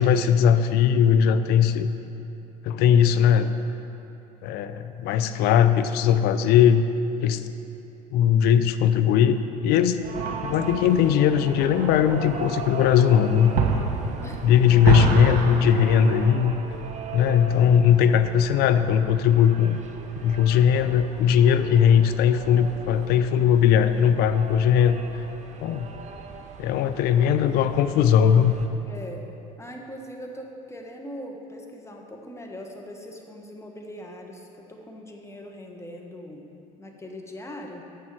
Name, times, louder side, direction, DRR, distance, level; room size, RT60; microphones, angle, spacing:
voice 1, 0.0-1.9 2.6-3.5 4.4-6.9 7.2-7.4 8.1-9.4 9.6-10.0 10.4-13.5 14.4-16.5 17.1-19.8 20.2-25.0 25.6-25.9 26.6-28.6, left 8 dB, 60° left, 11 dB, 0.5 m, -19 dB
sound 1, 10.0-28.7, right 5 dB, 40° right, 0.8 m, -39 dB
sound 2, 10.1-16.3, right 6 dB, 60° right, 1.2 m, -28 dB
voice 2, 28.9-29.2 29.6-36.5 36.8-37.8, equal, 15° left, 1 dB, 1.3 m, -40 dB
6.7 x 6.5 x 7.6 m, 2.9 s
hypercardioid pair, 75°, 18 cm